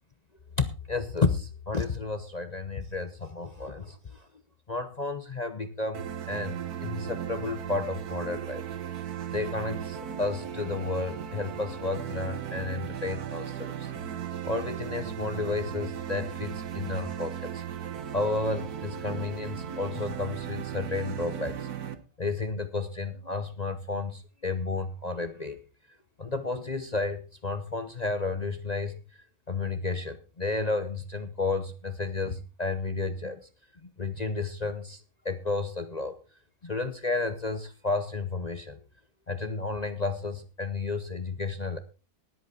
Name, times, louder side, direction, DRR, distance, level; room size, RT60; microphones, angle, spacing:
voice 1, 0.6-4.3 4.7-8.6 9.3-13.9 14.4-17.6 18.1-21.7 22.2-25.6 26.2-29.0 29.5-33.4 34.0-36.2 36.6-38.8 39.3-41.8, left 3 dB, 35° left, 10 dB, 0.7 m, -32 dB
sound 1, 5.9-22.0, right 9 dB, 70° right, 1.6 m, -36 dB
18.5 x 8.4 x 4.2 m, 0.33 s
omnidirectional pair, 1.7 m